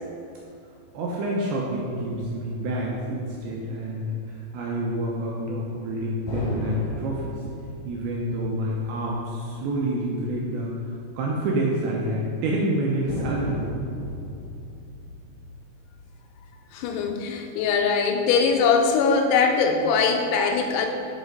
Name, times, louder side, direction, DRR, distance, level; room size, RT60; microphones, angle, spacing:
voice 1, 0.9-7.4 7.9-10.7 11.2-13.7, right 1 dB, 85° right, -3 dB, 2.6 m, -28 dB
sound 1, 2.0-3.9 6.3-10.0 10.3-10.4 13.1-16.8, left 1 dB, 65° left, 2.2 m, -36 dB
voice 2, 16.7-20.9, left 5 dB, 85° left, 3 dB, 3.3 m, -21 dB
7.3 x 5.0 x 3.9 m, 2.5 s
omnidirectional pair, 5.8 m